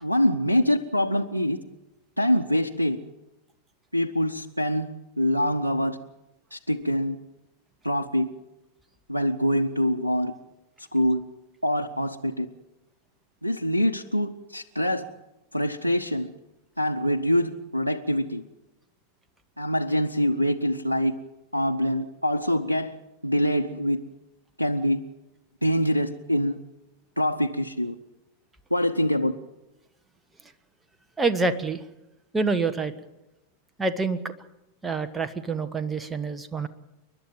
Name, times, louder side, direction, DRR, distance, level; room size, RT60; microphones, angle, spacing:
voice 1, 0.0-1.6 2.2-3.0 3.9-6.0 6.5-7.2 7.8-8.3 9.1-10.3 10.9-11.2 11.6-12.5 13.4-15.0 15.5-16.3 16.8-18.4 19.6-21.1 21.5-23.0 23.2-24.0 24.6-25.0 25.6-26.6 27.2-28.0 28.7-29.3, equal, 90° right, 0.9 m, -24 dB
voice 2, 31.2-31.8 32.3-32.9 33.8-34.3 34.8-36.7, right 3 dB, 10° right, 1.3 m, -26 dB
29.0 x 11.5 x 9.1 m
figure-of-eight pair, 90°, 0 cm